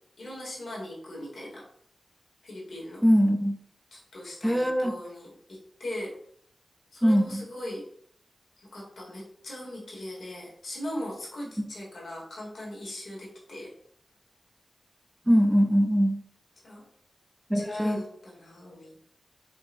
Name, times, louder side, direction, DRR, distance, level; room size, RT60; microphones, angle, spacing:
voice 1, 0.2-1.6 2.4-3.0 3.9-6.1 6.9-7.9 8.6-13.7 16.6-16.8 17.5-19.0, left 1 dB, 75° left, -4 dB, 1.4 m, -39 dB
voice 2, 3.0-3.6 4.4-4.9 7.0-7.4 15.3-16.2 17.5-18.0, equal, 10° right, 5 dB, 0.4 m, -22 dB
4.5 x 2.8 x 2.5 m, 0.65 s
wide cardioid pair, 75°, 0 cm